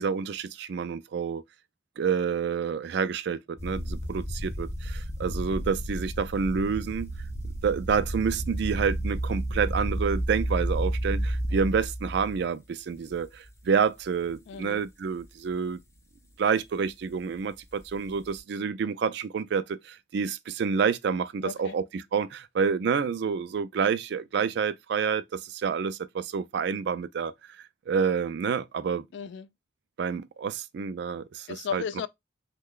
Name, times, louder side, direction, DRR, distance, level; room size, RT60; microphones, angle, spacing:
voice 1, 0.0-1.4 2.0-7.1 7.6-15.8 16.4-27.3 27.9-29.1 30.0-31.5 31.7-31.8, right 6 dB, 60° right, 0.3 m, -28 dB
sound 1, 3.6-12.4 13.1-13.5 14.0-14.1 17.7-18.4, right 1 dB, 15° left, 0.5 m, -31 dB
voice 2, 14.5-14.8 21.4-21.8 29.1-29.5 31.5-32.1, left 7 dB, 70° left, 0.3 m, -35 dB
3.2 x 2.2 x 3.6 m
head